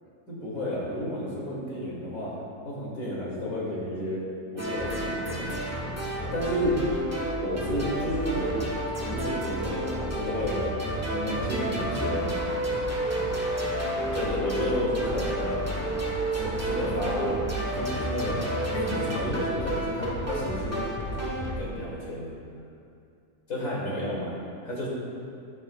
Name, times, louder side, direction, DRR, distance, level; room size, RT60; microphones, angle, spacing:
voice 1, 0.3-2.3 2.6-4.2 4.5-5.4 6.3-6.8 7.4-8.6 9.0-12.3 14.1-15.7 16.3-17.5 17.7-18.4 18.7-20.8 21.4-22.3 23.5-24.3 24.6-24.9, left 1 dB, 65° left, -6 dB, 3.0 m, -31 dB
sound 1, 4.6-21.5, right 1 dB, 10° right, 1.2 m, -30 dB
12.0 x 11.5 x 2.4 m, 2.4 s
omnidirectional pair, 1.6 m